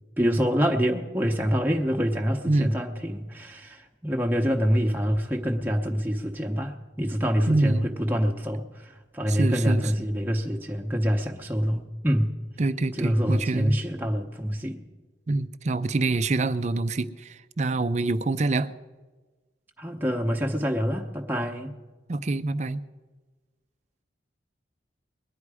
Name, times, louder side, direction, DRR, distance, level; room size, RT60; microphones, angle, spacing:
voice 1, 0.2-12.3 12.9-14.8 19.8-21.7, equal, 10° right, 1 dB, 0.8 m, -26 dB
voice 2, 7.5-7.9 9.3-9.8 12.6-13.8 15.3-18.8 22.1-22.8, right 2 dB, 35° right, 13 dB, 0.5 m, -26 dB
21.0 x 11.0 x 4.8 m, 1.3 s
head